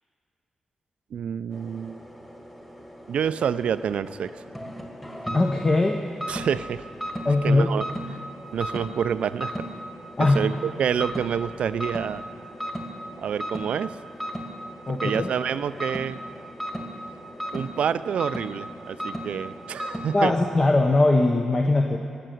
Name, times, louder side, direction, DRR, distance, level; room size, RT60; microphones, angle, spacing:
voice 1, 1.1-2.0 3.1-4.3 6.3-6.8 7.4-7.8 8.5-9.7 10.3-12.2 13.2-14.0 14.9-16.2 17.5-20.3, right 8 dB, 80° right, 14 dB, 0.4 m, -27 dB
sound 1, 1.5-20.5, equal, 10° left, 2.2 m, -36 dB
voice 2, 5.3-6.0 7.2-7.7 10.2-10.4 14.9-15.3 20.1-22.0, left 2 dB, 35° left, 3 dB, 0.9 m, -20 dB
19.0 x 6.7 x 7.7 m, 2.5 s
cardioid pair, 60°, 2 cm